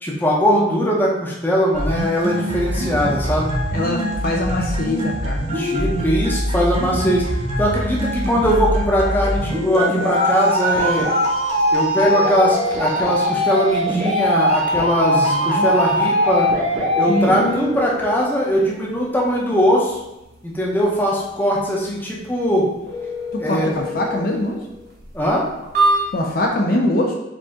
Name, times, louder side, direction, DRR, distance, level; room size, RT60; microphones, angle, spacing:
voice 1, 0.0-3.5 5.5-7.3 7.6-11.1 11.7-16.5 17.0-20.0 20.4-22.7 23.4-23.7 25.1-25.5, equal, 10° left, -3 dB, 0.7 m, -20 dB
sound 1, 1.7-17.7, equal, 35° right, 1.0 m, -22 dB
voice 2, 3.7-5.6 15.1-15.7 17.1-17.3 23.5-24.6 26.1-27.1, left 1 dB, 50° left, 1 dB, 0.5 m, -22 dB
sound 2, 9.8-26.5, right 1 dB, 55° right, 1.4 m, -29 dB
4.9 x 2.7 x 3.6 m, 0.93 s
head